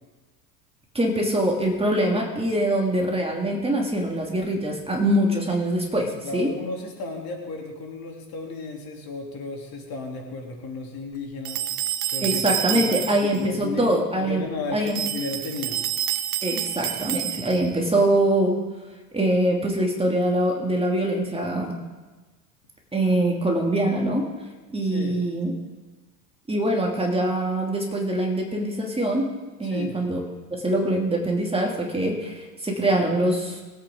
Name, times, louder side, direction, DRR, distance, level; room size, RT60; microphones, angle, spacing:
voice 1, 0.9-6.5 12.2-14.4 14.7-15.0 16.4-18.5 19.1-21.7 22.9-24.2 24.7-25.5 26.5-29.3 29.6-30.2 30.6-33.6, right 1 dB, 10° right, 0 dB, 2.8 m, -23 dB
voice 2, 6.2-11.6 12.1-13.0 13.3-15.8 16.5-16.6 24.8-25.2 29.6-29.9, left 3 dB, 45° left, 1 dB, 3.4 m, -34 dB
sound 1, 11.4-13.4 14.9-17.8, right 12 dB, 70° right, 0.9 m, -28 dB
23.0 x 8.8 x 3.9 m, 1.2 s
hypercardioid pair, 75°, 49 cm